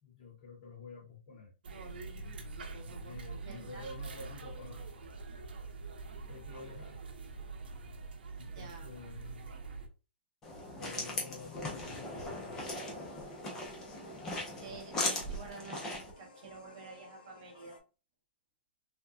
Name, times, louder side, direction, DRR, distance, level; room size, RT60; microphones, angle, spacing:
voice 1, 0.0-1.5 2.8-4.9 6.3-7.0 7.3-7.4 8.4-9.5 10.8-12.7, left 3 dB, 40° left, -5 dB, 1.7 m, -49 dB
sound 1, 1.6-9.9, right 3 dB, 65° right, 0.7 m, -45 dB
voice 2, 3.5-3.9 8.5-8.9 14.6-17.8, right 3 dB, 30° right, 0 dB, 0.8 m, -49 dB
sound 2, 10.4-16.1, left 2 dB, 10° left, 0.4 m, -39 dB
sound 3, 12.0-17.8, left 2 dB, 60° left, 0.7 m, -55 dB
3.4 x 2.1 x 2.6 m, 0.32 s
hypercardioid pair, 175°, 6 cm